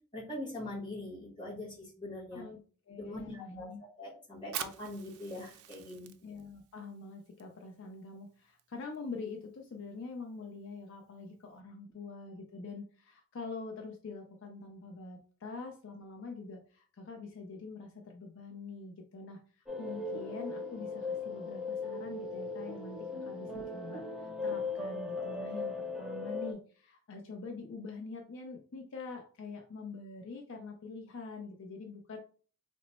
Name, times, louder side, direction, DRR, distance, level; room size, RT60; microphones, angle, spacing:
voice 1, 0.1-2.4 3.0-3.7 4.0-6.1 23.4-23.6, left 1 dB, 20° left, -4 dB, 1.3 m, -42 dB
voice 2, 2.9-3.8 6.2-32.2, left 3 dB, 60° left, 3 dB, 0.4 m, -45 dB
Fire, 4.4-11.6, right 10 dB, 75° right, 0.4 m, -48 dB
sound 1, 19.7-26.5, left 3 dB, 5° right, 0.4 m, -38 dB
3.1 x 2.0 x 4.1 m, 0.41 s
head